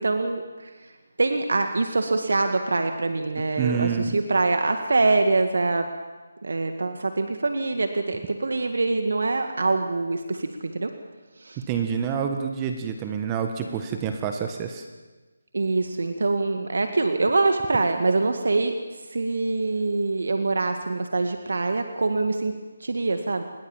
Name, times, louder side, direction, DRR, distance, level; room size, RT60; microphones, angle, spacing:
voice 1, 0.0-5.9 6.4-10.9 11.4-11.6 15.5-23.4, right 3 dB, 70° right, 6 dB, 1.9 m, -24 dB
voice 2, 3.6-4.2 11.7-14.9, right 7 dB, 15° right, 5 dB, 1.4 m, -27 dB
28.5 x 21.5 x 7.3 m, 1.3 s
figure-of-eight pair, 165°, 0 cm